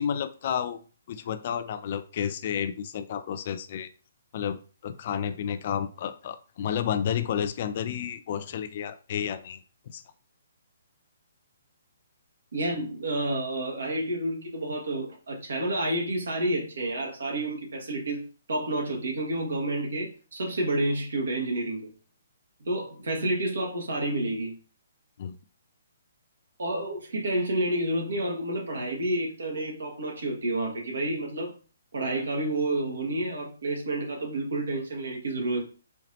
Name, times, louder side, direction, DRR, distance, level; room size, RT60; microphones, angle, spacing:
voice 1, 0.0-3.9 4.3-9.6 9.9-10.0 25.2-25.4, left 8 dB, 45° left, 12 dB, 0.4 m, -31 dB
voice 2, 12.5-21.9 22.6-24.6 26.6-31.6 31.9-35.6, right 1 dB, 75° right, 0 dB, 1.5 m, -29 dB
4.4 x 2.9 x 2.7 m, 0.38 s
figure-of-eight pair, 135°, 0 cm